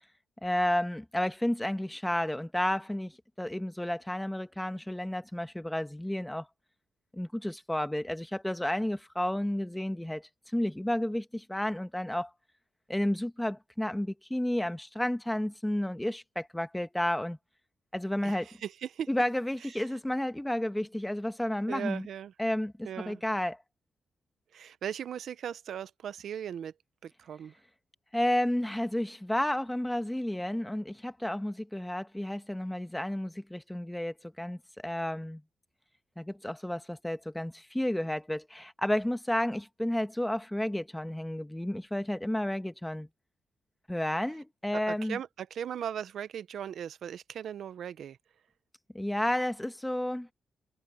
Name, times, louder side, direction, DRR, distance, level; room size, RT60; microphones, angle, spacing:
voice 1, 0.4-6.5 7.1-12.3 12.9-17.4 17.9-18.5 19.1-22.1 22.4-23.6 28.1-35.4 36.2-43.1 43.9-45.2 48.9-50.3, left 1 dB, 5° left, 1.4 m, -31 dB
voice 2, 18.2-19.1 21.7-22.3 22.8-23.2 24.5-26.7 27.0-27.5 44.7-48.2, right 9 dB, 75° right, 0.7 m, -38 dB
cardioid pair, 105°, 0 cm